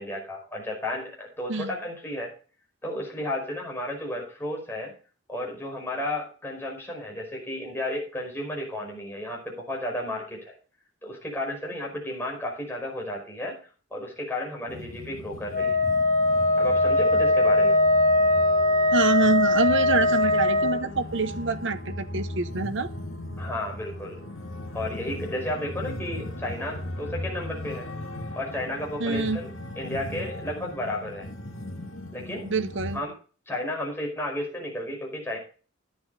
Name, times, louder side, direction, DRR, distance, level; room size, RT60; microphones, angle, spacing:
voice 1, 0.0-2.3 2.8-4.9 5.3-10.6 11.0-13.6 13.9-15.8 16.6-17.8 23.4-24.2 24.7-27.9 28.4-29.5 29.8-31.3 32.1-32.5 32.9-33.1 33.5-35.4, left 1 dB, 10° left, -1 dB, 5.3 m, -33 dB
sound 1, 14.7-33.0, left 1 dB, 70° left, 2.3 m, -37 dB
Wind instrument woodwind instrument, 15.5-20.8, left 2 dB, 40° left, 3.5 m, -21 dB
voice 2, 18.9-22.9 29.0-29.4 32.4-33.0, right 3 dB, 60° right, 10 dB, 1.0 m, -26 dB
11.5 x 9.5 x 4.1 m, 0.38 s
head